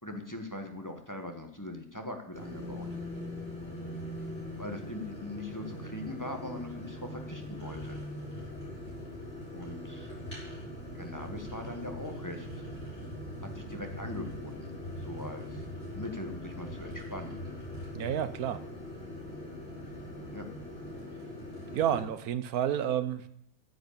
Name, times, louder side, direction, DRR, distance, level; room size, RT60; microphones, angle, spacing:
voice 1, 0.0-2.9 4.6-8.0 9.5-10.2 10.9-12.5 13.4-14.7 15.0-15.7 15.9-17.4 20.3-20.5, left 1 dB, 15° left, 4 dB, 1.2 m, -41 dB
sound 1, 2.3-22.0, left 1 dB, 45° left, 6.2 m, -41 dB
voice 2, 17.9-18.7 21.7-23.3, right 10 dB, 85° right, 13 dB, 1.3 m, -30 dB
9.8 x 8.2 x 8.5 m, 0.73 s
omnidirectional pair, 1.5 m